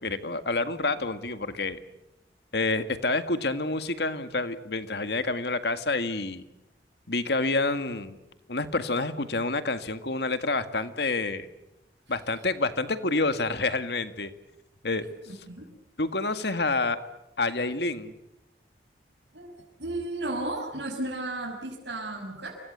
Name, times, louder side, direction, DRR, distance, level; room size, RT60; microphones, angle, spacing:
voice 1, 0.0-1.8 2.5-6.4 7.1-8.2 8.5-11.5 12.1-14.3 14.8-15.0 16.0-17.0 17.4-18.1, left 3 dB, 70° left, 10 dB, 1.9 m, -28 dB
voice 2, 15.3-15.7 19.3-19.5 19.8-22.6, right 2 dB, 75° right, -4 dB, 6.3 m, -34 dB
29.5 x 24.0 x 8.2 m, 0.90 s
head